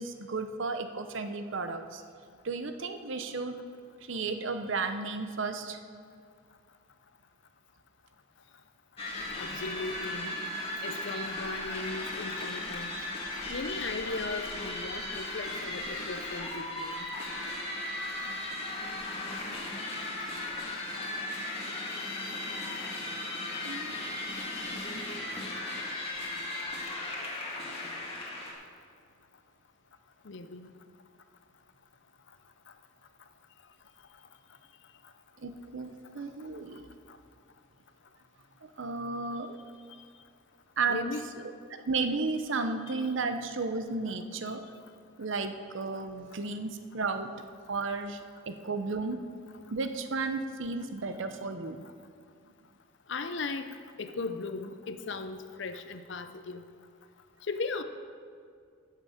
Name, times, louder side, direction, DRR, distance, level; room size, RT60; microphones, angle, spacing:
voice 1, 0.0-2.0 2.4-3.6 4.0-5.8 23.6-24.0 24.9-25.0 35.4-36.9 38.6-39.6 40.8-41.0 41.9-44.6 45.2-47.3 47.7-49.2 49.7-51.8, right 3 dB, 65° right, 8 dB, 0.7 m, -33 dB
sound 1, 9.0-28.5, left 2 dB, 30° left, 1.6 m, -36 dB
voice 2, 9.4-10.3 10.8-12.9 13.5-17.0 30.2-30.7 37.1-37.2 40.9-41.3 43.0-43.1 53.1-56.6 57.5-57.8, left 3 dB, 55° left, 9 dB, 0.6 m, -37 dB
15.0 x 6.7 x 5.0 m, 2.2 s
head